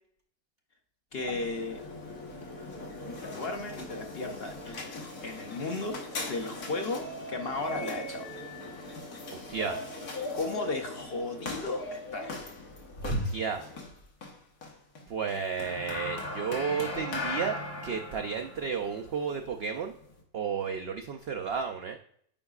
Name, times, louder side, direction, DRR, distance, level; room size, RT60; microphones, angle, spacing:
sound 1, 1.1-20.2, left 2 dB, 90° left, 1.8 m, -39 dB
voice 1, 1.1-1.8 3.0-8.3 10.3-12.4, left 3 dB, 55° left, 4 dB, 0.7 m, -35 dB
voice 2, 9.3-9.8 13.0-13.8 15.1-19.9 20.3-22.0, right 6 dB, 80° right, 5 dB, 0.5 m, -33 dB
8.7 x 4.8 x 2.3 m, 0.63 s
omnidirectional pair, 1.6 m